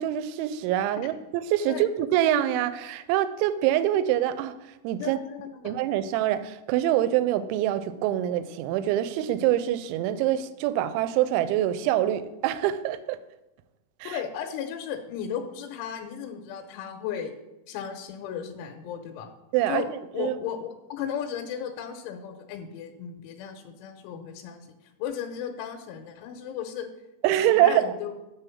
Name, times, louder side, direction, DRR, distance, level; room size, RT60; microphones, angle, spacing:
voice 1, 0.0-4.5 4.8-5.2 5.6-13.2 14.0-14.2 19.5-19.8 20.2-20.4 27.2-27.9, right 12 dB, 85° right, 2.8 m, -25 dB
voice 2, 5.0-5.7 14.0-17.3 17.7-19.3 19.7-19.9 20.1-24.7 25.0-26.9 27.4-28.1, left 8 dB, 85° left, 3.2 m, -35 dB
9.2 x 3.7 x 6.9 m
omnidirectional pair, 5.5 m